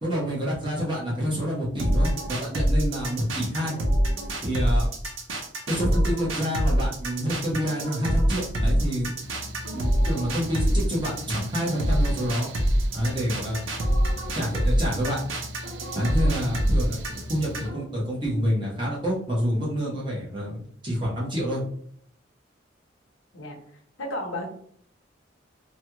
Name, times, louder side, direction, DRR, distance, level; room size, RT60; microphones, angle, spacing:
voice 1, 0.0-3.8 4.4-4.9 5.7-9.1 9.7-12.5 12.9-13.6 14.4-15.2 15.9-21.6, equal, 25° right, -6 dB, 1.1 m, -28 dB
sound 1, 1.8-17.8, equal, 90° right, 0.7 m, -25 dB
Mechanical fan, 9.2-17.7, equal, 65° right, 0.4 m, -40 dB
voice 2, 24.0-24.5, left 1 dB, 85° left, 2 dB, 0.8 m, -32 dB
3.1 x 2.3 x 2.9 m, 0.62 s
head